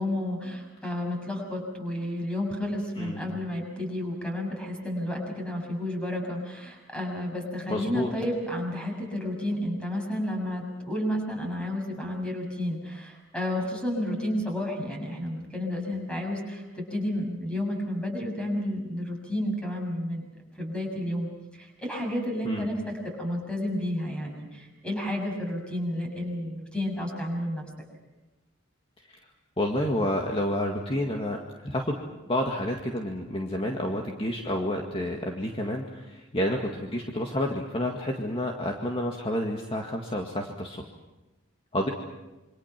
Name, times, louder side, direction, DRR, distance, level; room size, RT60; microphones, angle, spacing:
voice 1, 0.0-20.2 20.6-27.6, left 1 dB, 5° left, 1 dB, 6.8 m, -31 dB
voice 2, 7.7-8.1 22.4-22.7 29.6-32.0 32.3-40.8 41.7-41.9, left 1 dB, 30° left, 1 dB, 2.0 m, -29 dB
27.5 x 25.0 x 6.0 m, 1.1 s
head